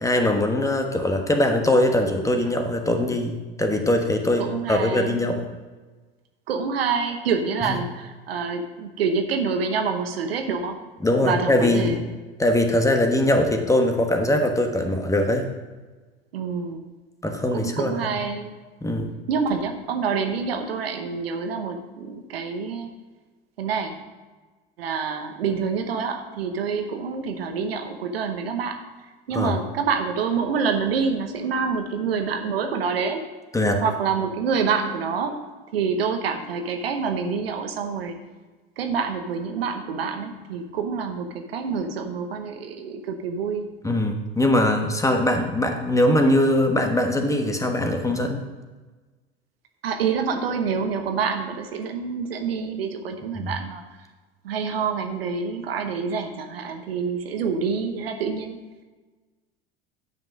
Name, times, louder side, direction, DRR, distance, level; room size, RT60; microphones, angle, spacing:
voice 1, 0.0-5.4 7.7-7.8 11.0-12.0 12.4-15.4 17.2-18.2 18.8-19.1 29.3-29.5 33.5-33.8 43.8-48.4 53.3-53.5, left 1 dB, 10° left, 4 dB, 1.2 m, -22 dB
voice 2, 4.4-5.2 6.5-10.8 11.2-12.0 16.3-16.8 17.5-18.5 19.3-22.9 23.6-24.0 24.8-28.8 29.3-33.2 33.8-35.4 35.7-38.2 38.8-43.7 49.8-53.8 54.4-58.6, right 5 dB, 75° right, 6 dB, 1.0 m, -27 dB
9.3 x 5.8 x 5.2 m, 1.3 s
figure-of-eight pair, 70°, 30 cm